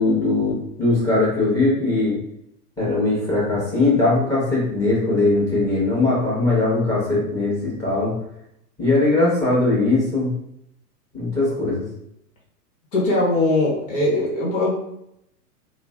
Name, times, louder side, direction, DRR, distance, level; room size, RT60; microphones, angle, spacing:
voice 1, 0.0-2.2 2.8-8.1 8.8-10.3 11.1-11.8, left 2 dB, 5° left, -7 dB, 1.1 m, -20 dB
voice 2, 12.9-14.7, left 2 dB, 50° left, -5 dB, 1.2 m, -20 dB
3.0 x 2.2 x 2.4 m, 0.76 s
figure-of-eight pair, 110°, 48 cm